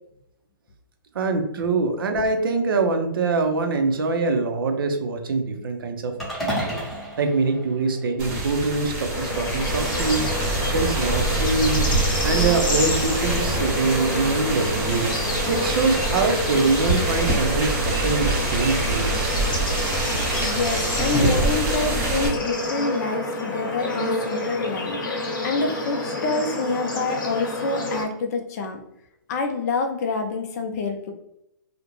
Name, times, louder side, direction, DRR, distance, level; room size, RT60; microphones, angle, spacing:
voice 1, 1.1-6.1 6.4-6.8 7.2-10.3 10.7-11.9 12.2-15.1 15.5-19.4, right 3 dB, 85° right, 6 dB, 0.5 m, -24 dB
sound 1, 6.2-8.5, equal, ahead, 0.7 m, -31 dB
sound 2, 8.2-22.3, right 2 dB, 25° right, 0.9 m, -25 dB
Bird / Insect / Frog, 9.1-28.0, left 2 dB, 65° left, 0.9 m, -29 dB
voice 2, 20.4-28.8 29.3-31.1, left 3 dB, 45° left, 4 dB, 0.5 m, -27 dB
2.5 x 2.1 x 3.0 m, 0.83 s
hypercardioid pair, 150°, 11 cm